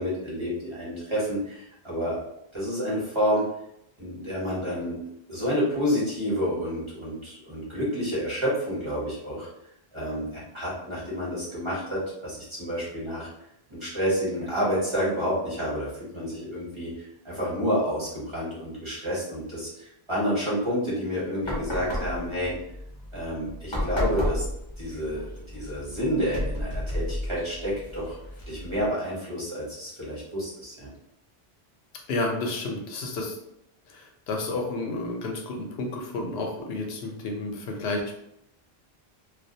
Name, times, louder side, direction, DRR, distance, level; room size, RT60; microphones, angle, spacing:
voice 1, 0.0-2.2 2.5-3.5 4.0-5.0 5.3-9.5 9.9-13.3 13.7-22.5 23.1-24.4 24.8-28.1 28.5-30.9, equal, 30° right, -7 dB, 0.9 m, -29 dB
sound 1, 21.4-28.9, left 1 dB, 35° left, 0.5 m, -33 dB
voice 2, 32.1-33.4 33.9-38.2, left 2 dB, 85° left, 2 dB, 0.8 m, -31 dB
2.2 x 2.1 x 2.6 m, 0.80 s
omnidirectional pair, 1.0 m